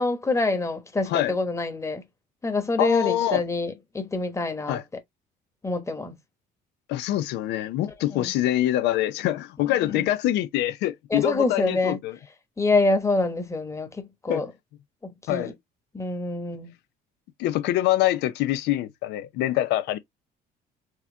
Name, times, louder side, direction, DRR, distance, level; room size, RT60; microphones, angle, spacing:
voice 1, 0.0-2.0 2.4-4.8 5.6-6.2 7.9-8.3 9.8-10.0 11.1-12.0 12.6-14.5 15.0-15.5 15.9-16.7, left 3 dB, 15° left, 1.2 m, -26 dB
voice 2, 2.8-3.4 4.7-4.8 6.9-12.1 14.3-14.5 15.3-15.5 17.4-20.0, left 14 dB, 85° left, 0.5 m, -25 dB
4.6 x 2.9 x 3.3 m
cardioid pair, 110°, 17 cm